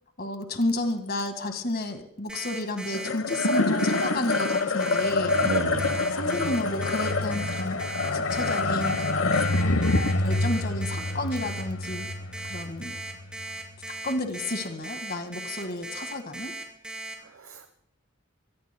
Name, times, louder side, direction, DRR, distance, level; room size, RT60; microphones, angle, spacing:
voice 1, 0.2-5.3 6.1-7.8 8.1-9.4 10.2-12.1 12.4-13.0 14.0-16.5, left 1 dB, 45° left, 6 dB, 1.8 m, -31 dB
Alarm, 2.3-17.1, right 2 dB, 5° right, 3.3 m, -37 dB
sound 1, 2.9-13.4, left 2 dB, 70° left, 1.1 m, -26 dB
voice 2, 5.4-6.0 17.2-17.7, right 3 dB, 70° right, 7 dB, 1.1 m, -32 dB
23.0 x 19.5 x 2.2 m, 0.73 s
head